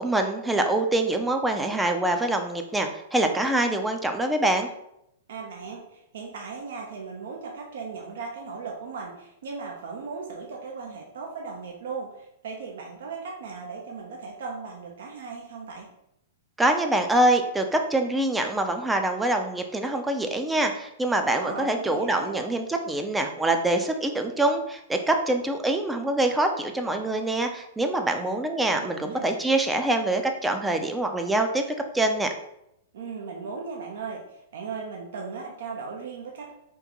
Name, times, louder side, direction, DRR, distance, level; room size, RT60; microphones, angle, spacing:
voice 1, 0.0-4.7 16.6-31.6 31.9-32.3, right 1 dB, 10° right, 5 dB, 0.4 m, -25 dB
voice 2, 5.3-15.9 21.3-22.4 28.2-28.3 28.7-29.3 32.9-36.5, right 5 dB, 70° right, 1 dB, 0.6 m, -37 dB
3.6 x 2.5 x 2.9 m, 0.80 s
hypercardioid pair, 120°, 0 cm